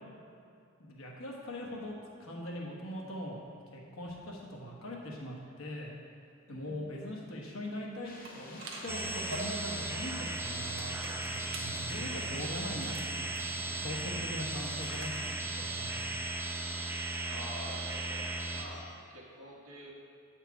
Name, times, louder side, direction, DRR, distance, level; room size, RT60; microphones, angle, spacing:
voice 1, 0.8-1.9 2.2-3.4 3.7-5.9 6.5-11.0 11.9-15.1 15.6-16.0, left 1 dB, 70° left, -2 dB, 1.2 m, -41 dB
voice 2, 6.5-6.9 17.3-19.9, equal, 85° right, -3 dB, 1.3 m, -48 dB
sound 1, 8.0-13.9, left 2 dB, 40° left, 0.7 m, -54 dB
sound 2, 8.3-15.3, right 2 dB, 60° right, 0.8 m, -46 dB
sound 3, 8.9-18.6, right 2 dB, 10° right, 0.4 m, -36 dB
8.0 x 4.4 x 4.8 m, 2.5 s
head